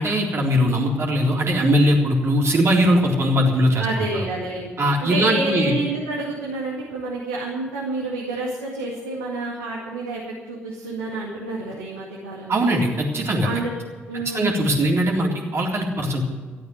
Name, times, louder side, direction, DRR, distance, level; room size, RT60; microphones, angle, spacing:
voice 1, 0.0-3.9 4.8-5.7 12.5-13.5 14.3-16.2, equal, 45° right, -1 dB, 3.7 m, -20 dB
voice 2, 3.8-4.7 5.0-10.2 10.5-12.8 13.4-13.7 14.1-14.7, right 2 dB, 90° right, -5 dB, 2.3 m, -29 dB
14.0 x 8.7 x 9.7 m, 1.5 s
hypercardioid pair, 45°, 6 cm